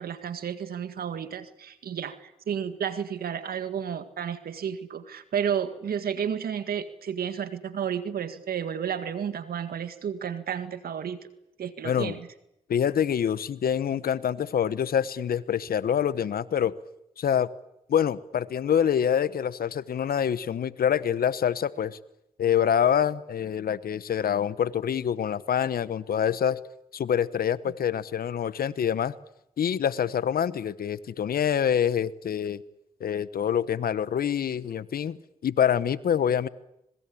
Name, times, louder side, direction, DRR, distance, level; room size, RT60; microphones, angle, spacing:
voice 1, 0.0-11.3 11.6-12.3, right 8 dB, 85° right, 11 dB, 1.9 m, -32 dB
voice 2, 11.8-12.2 12.7-16.7 17.2-17.5 17.9-22.0 22.4-26.6 26.9-29.1 29.6-32.6 33.0-35.2 35.4-36.5, left 8 dB, 80° left, 17 dB, 1.1 m, -26 dB
26.5 x 20.5 x 8.6 m, 0.82 s
supercardioid pair, 45°, 15 cm